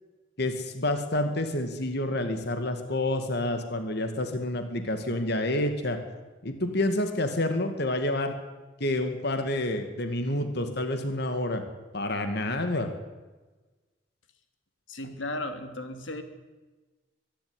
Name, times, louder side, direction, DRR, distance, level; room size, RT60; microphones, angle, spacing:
voice 1, 0.4-6.0 6.4-8.3 8.8-11.6 11.9-12.9, left 1 dB, 60° left, 7 dB, 2.1 m, -28 dB
voice 2, 14.9-16.2, left 1 dB, 85° left, 7 dB, 2.8 m, -35 dB
23.5 x 11.5 x 9.8 m, 1.2 s
head